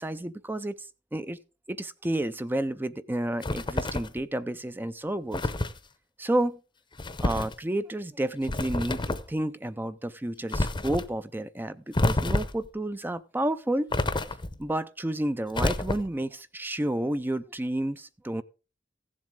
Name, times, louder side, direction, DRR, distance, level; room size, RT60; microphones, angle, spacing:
voice 1, 0.0-1.4 1.7-5.5 6.2-6.6 7.2-13.9 14.6-18.4, right 1 dB, 10° right, 0.4 m, -31 dB
sound 1, 3.4-4.2 5.3-5.8 7.0-7.6 8.4-9.3 10.5-11.1 11.9-12.7 13.9-14.6 15.5-16.2, left 2 dB, 25° left, 0.7 m, -28 dB
16.0 x 7.5 x 3.6 m
head